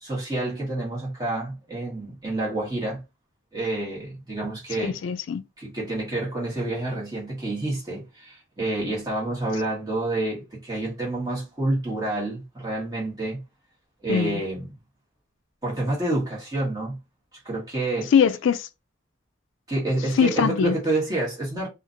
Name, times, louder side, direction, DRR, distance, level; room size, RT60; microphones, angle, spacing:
voice 1, 0.0-3.0 3.5-5.0 5.6-13.4 14.0-14.6 15.6-17.0 17.4-18.1 19.7-21.7, right 2 dB, 20° right, 1.3 m, -28 dB
voice 2, 4.8-5.4 14.1-14.4 18.1-18.7 20.1-20.8, left 7 dB, 70° left, 0.3 m, -22 dB
2.8 x 2.4 x 2.6 m
head